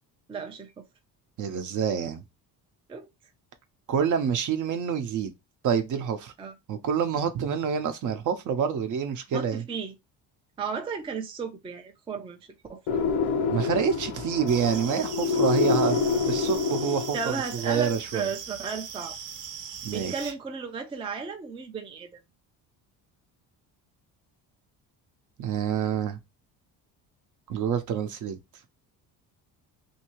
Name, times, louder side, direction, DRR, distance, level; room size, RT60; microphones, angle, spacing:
voice 1, 0.3-0.9 2.9-3.1 6.4-6.5 9.3-9.9 10.6-12.4 12.7-13.0 17.1-19.2 19.9-22.1, right 5 dB, 15° right, 0.4 m, -34 dB
voice 2, 1.4-2.2 3.9-5.3 5.6-6.3 6.7-9.6 13.5-16.0 16.3-18.3 19.8-20.3 25.4-26.2 27.5-28.4, right 7 dB, 55° right, 0.7 m, -27 dB
sound 1, 12.9-17.5, left 5 dB, 75° left, 0.7 m, -27 dB
sound 2, 14.5-20.3, right 7 dB, 80° right, 0.9 m, -40 dB
2.7 x 2.7 x 2.8 m
cardioid pair, 135°, 37 cm